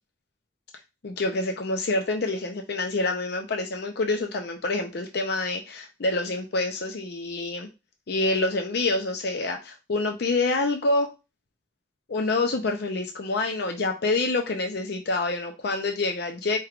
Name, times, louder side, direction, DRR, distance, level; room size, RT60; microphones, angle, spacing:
voice 1, 1.0-7.7 8.1-11.1 12.1-16.6, left 2 dB, 60° left, 0.5 m, -27 dB
4.5 x 3.4 x 2.4 m
head